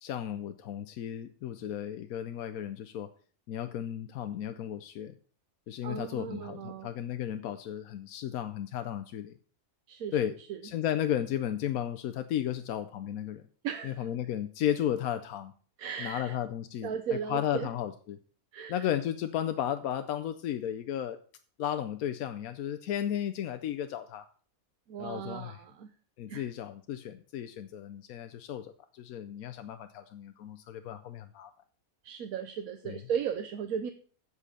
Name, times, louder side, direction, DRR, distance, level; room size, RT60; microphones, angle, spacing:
voice 1, 0.0-3.1 3.5-5.2 5.7-9.4 10.1-10.3 10.6-13.5 13.8-15.5 16.0-16.9 17.3-18.2 18.7-21.2 21.6-24.3 25.0-25.6 26.2-31.5 32.8-33.0, left 10 dB, 85° left, 9 dB, 1.1 m, -34 dB
voice 2, 5.8-6.9 9.9-10.6 13.6-14.1 15.8-16.3 16.8-17.7 18.5-18.8 24.9-25.9 26.3-26.5 32.0-33.9, right 7 dB, 85° right, 8 dB, 1.2 m, -36 dB
8.3 x 7.5 x 6.6 m, 0.43 s
omnidirectional pair, 1.5 m